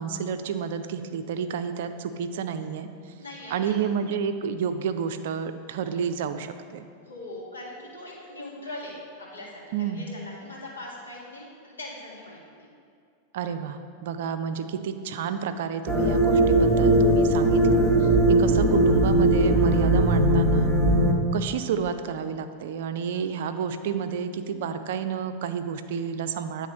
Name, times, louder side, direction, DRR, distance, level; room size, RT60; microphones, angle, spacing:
voice 1, 0.0-2.9 3.5-6.9 9.7-10.1 13.3-20.7 21.3-26.7, right 7 dB, 55° right, 9 dB, 0.4 m, -30 dB
voice 2, 3.2-3.8 7.0-12.7, left 1 dB, 75° left, -6 dB, 1.8 m, -41 dB
sound 1, 15.9-21.1, right 1 dB, 10° left, 0.8 m, -19 dB
9.5 x 3.7 x 4.2 m, 2.3 s
figure-of-eight pair, 90°, 0 cm